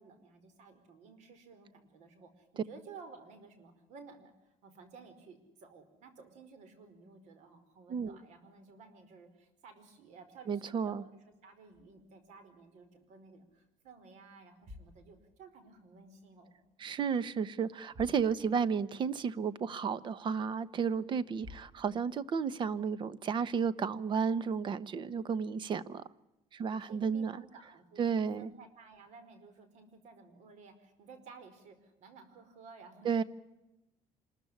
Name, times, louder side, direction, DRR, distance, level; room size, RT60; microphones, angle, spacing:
voice 1, 0.0-16.5 26.6-33.2, right 4 dB, 70° right, 4.9 m, -55 dB
voice 2, 10.5-11.0 16.8-26.0 26.5-27.3 28.0-28.5 33.0-33.2, right 6 dB, 40° right, 1.0 m, -32 dB
sound 1, 11.7-13.3 13.6-13.9 14.4-16.3 16.5-17.2 17.5-17.6 17.8-18.9 19.2-19.3 19.9-20.0 21.0-21.1 21.4-22.4, left 3 dB, 15° right, 4.3 m, -55 dB
26.5 x 14.0 x 9.8 m
cardioid pair, 135°, 13 cm